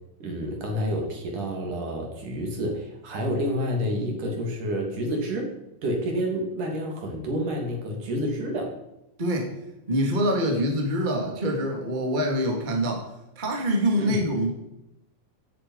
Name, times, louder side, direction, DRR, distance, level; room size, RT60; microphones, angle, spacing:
voice 1, 0.2-5.5 5.8-8.7 14.0-14.2, equal, 45° right, 1 dB, 3.7 m, -29 dB
voice 2, 9.2-9.5 9.9-13.0 13.3-14.5, equal, 20° right, 0 dB, 1.2 m, -25 dB
17.0 x 11.0 x 5.6 m, 0.88 s
omnidirectional pair, 5.7 m